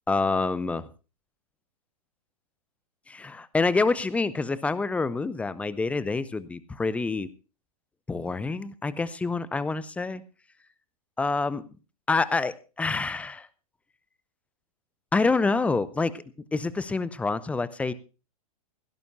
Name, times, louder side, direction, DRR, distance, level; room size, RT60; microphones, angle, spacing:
voice 1, 0.1-0.9 3.1-7.3 8.1-10.2 11.2-11.7 12.1-13.5 15.1-16.2 16.5-17.9, left 3 dB, 5° left, 18 dB, 0.7 m, -27 dB
17.0 x 16.5 x 2.6 m, 0.32 s
figure-of-eight pair, 105°, 19 cm